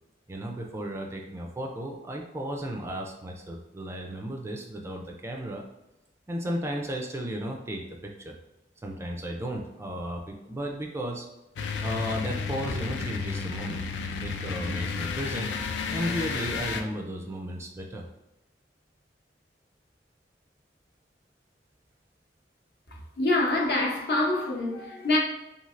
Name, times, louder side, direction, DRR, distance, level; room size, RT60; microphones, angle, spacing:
voice 1, 0.3-5.6 6.3-8.3 8.8-11.3 11.8-13.8 14.2-15.5 15.9-18.1, equal, 15° right, 1 dB, 0.3 m, -34 dB
sound 1, 11.6-16.8, left 5 dB, 80° left, 0.4 m, -32 dB
voice 2, 22.9-25.2, left 2 dB, 60° left, -1 dB, 0.7 m, -26 dB
3.1 x 2.7 x 2.4 m, 0.94 s
head